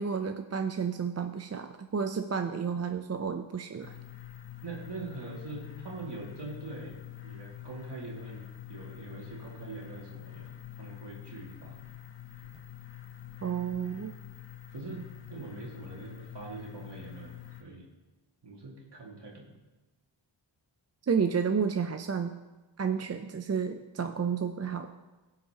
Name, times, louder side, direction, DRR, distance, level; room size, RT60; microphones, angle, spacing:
voice 1, 0.0-3.9 13.4-14.1 21.1-22.3 22.8-25.0, right 6 dB, 35° right, 7 dB, 0.6 m, -31 dB
sound 1, 3.8-17.6, left 13 dB, 65° left, 1.3 m, -46 dB
voice 2, 4.6-10.5 10.8-11.8 14.7-17.9 18.4-19.6, right 3 dB, 60° right, -2 dB, 2.3 m, -43 dB
16.0 x 5.8 x 2.9 m, 1.1 s
cardioid pair, 40°, 47 cm